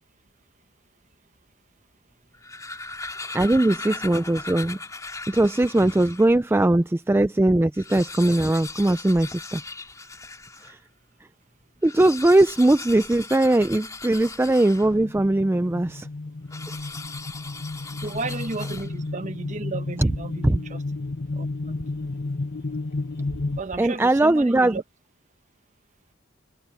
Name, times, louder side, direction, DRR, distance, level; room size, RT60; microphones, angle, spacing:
sound 1, 2.2-6.4 6.9-7.0 7.2-7.3 7.7-10.8 11.7-15.2 16.5-19.2, left 3 dB, 15° left, 3.2 m, -38 dB
voice 1, 3.3-4.8 5.3-9.6 10.6-10.8 11.8-16.1 16.8-16.9 20.0-20.1 20.4-20.6 23.8-24.8, right 1 dB, 10° right, 0.3 m, -20 dB
sound 2, 14.8-23.6, left 2 dB, 55° left, 1.1 m, -32 dB
voice 2, 17.9-20.8 21.3-21.7 23.6-24.8, right 3 dB, 35° right, 1.1 m, -33 dB
head